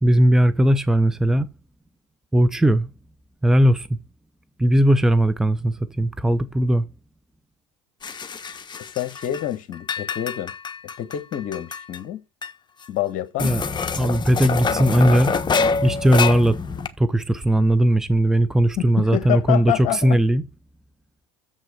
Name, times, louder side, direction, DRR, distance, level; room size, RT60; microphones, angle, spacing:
voice 1, 0.0-1.5 2.3-2.9 3.4-4.0 4.6-6.8 13.4-13.6 14.0-15.3 15.8-16.6 17.0-20.4, right 1 dB, 5° right, 0.7 m, -18 dB
sound 1, 8.0-9.5 9.7-12.0 12.4-12.5 12.8-12.9 13.4-16.9, left 5 dB, 25° left, 1.3 m, -26 dB
voice 2, 8.9-10.5 11.0-12.2 12.9-13.5 18.8-20.2, left 13 dB, 50° left, 1.4 m, -27 dB
7.4 x 6.2 x 4.9 m
hypercardioid pair, 85°, 17 cm